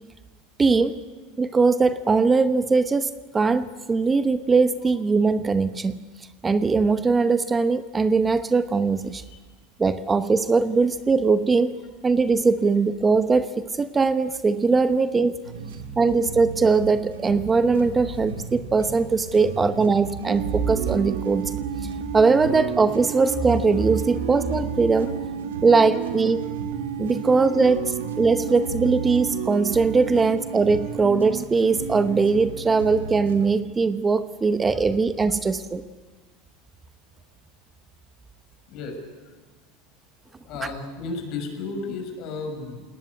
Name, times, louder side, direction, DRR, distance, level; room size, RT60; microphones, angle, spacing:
voice 1, 0.6-1.0 1.4-5.9 6.4-9.2 9.8-11.7 12.0-15.3 16.0-21.5 21.8-25.1 25.6-26.4 27.0-35.8, right 4 dB, 20° right, 12 dB, 0.9 m, -21 dB
sound 1, 15.4-33.5, right 5 dB, 85° right, 2.2 m, -36 dB
sound 2, 20.3-31.4, right 10 dB, 70° right, 1.0 m, -32 dB
voice 2, 38.7-39.0 39.3-39.4 40.4-42.8, left 3 dB, 55° left, 5 dB, 6.4 m, -34 dB
21.0 x 18.5 x 9.7 m, 1.3 s
hypercardioid pair, 90°, 0 cm